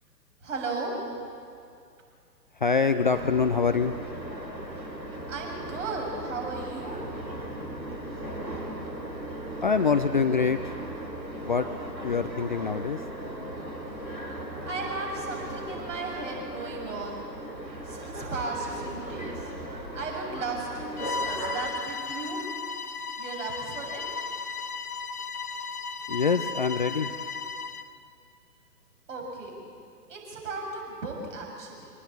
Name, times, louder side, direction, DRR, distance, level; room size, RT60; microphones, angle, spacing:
voice 1, 0.4-0.9 5.3-7.2 14.6-17.3 17.8-19.5 19.9-22.4 23.2-24.3 29.1-29.6 30.1-31.9, right 3 dB, 50° right, 0 dB, 7.1 m, -35 dB
voice 2, 2.5-4.0 9.6-10.7 11.4-11.7 12.0-13.0 26.1-27.1, left 5 dB, 30° left, 8 dB, 0.5 m, -25 dB
sound 1, 3.1-21.7, right 1 dB, 90° right, 3.9 m, -37 dB
Bowed string instrument, 21.0-27.9, left 4 dB, 60° left, 1.5 m, -35 dB
24.5 x 19.5 x 8.6 m, 2.4 s
figure-of-eight pair, 130°, 50 cm